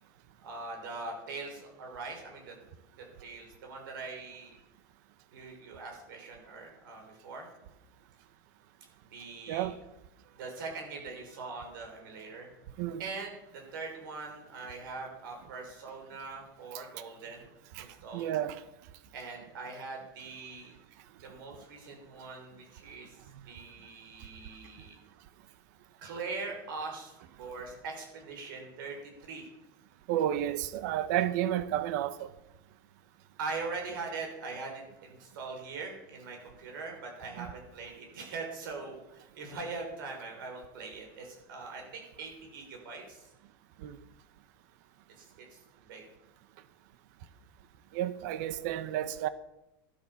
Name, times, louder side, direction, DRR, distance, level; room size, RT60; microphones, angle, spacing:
voice 1, 0.4-2.5 3.0-4.6 5.3-7.5 9.0-9.7 10.3-12.5 13.0-17.5 17.8-18.3 19.1-20.7 21.2-25.0 26.0-29.0 29.2-29.4 33.4-43.3 45.2-45.6 45.9-46.0, right 4 dB, 85° right, 6.4 m, -42 dB
voice 2, 18.1-18.6 23.3-23.4 30.1-32.3 37.4-37.5 43.8-44.0 47.9-49.3, right 11 dB, 55° right, 1.1 m, -31 dB
13.5 x 12.5 x 7.2 m
supercardioid pair, 170°, 11 cm